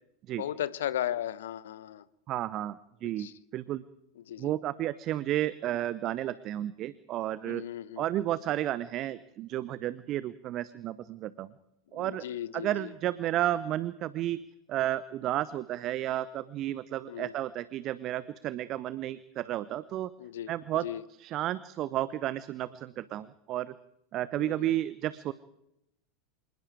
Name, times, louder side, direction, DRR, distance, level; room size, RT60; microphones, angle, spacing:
voice 1, 0.4-2.0 3.2-3.3 4.3-4.5 7.4-8.0 11.9-12.9 17.1-17.3 20.2-20.5 20.8-21.0 24.3-24.8, left 11 dB, 60° left, 18 dB, 1.1 m, -36 dB
voice 2, 2.3-3.8 4.4-7.6 8.0-11.5 11.9-12.2 12.5-14.4 14.7-20.1 20.5-23.7 24.1-25.3, right 13 dB, 40° right, 17 dB, 0.8 m, -32 dB
26.5 x 20.0 x 4.9 m, 0.80 s
figure-of-eight pair, 85°, 0 cm